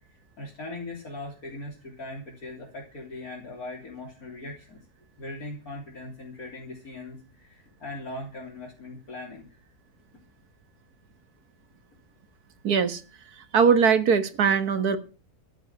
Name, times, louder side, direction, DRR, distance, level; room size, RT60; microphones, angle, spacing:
voice 1, 0.4-4.8 5.2-9.6, left 2 dB, 70° left, -2 dB, 4.1 m, -40 dB
voice 2, 12.6-13.0 13.5-15.0, right 6 dB, 85° right, 11 dB, 2.0 m, -21 dB
13.5 x 7.6 x 9.6 m, 0.34 s
omnidirectional pair, 1.6 m